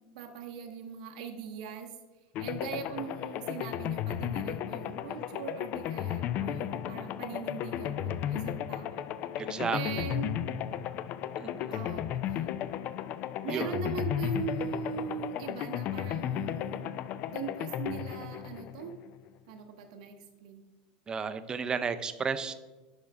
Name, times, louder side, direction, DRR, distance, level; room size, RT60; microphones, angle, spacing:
voice 1, 0.0-2.0 2.4-9.1 9.7-10.3 11.7-12.4 13.4-16.9 17.3-18.9 19.5-20.6, right 6 dB, 80° right, 3 dB, 0.8 m, -40 dB
sound 1, 2.3-19.3, left 10 dB, 45° left, 0.3 m, -34 dB
voice 2, 9.4-9.8 11.4-11.8 13.5-13.7 21.1-22.5, right 5 dB, 20° right, 11 dB, 0.5 m, -33 dB
10.5 x 4.5 x 3.5 m, 1.2 s
supercardioid pair, 130°, 4 cm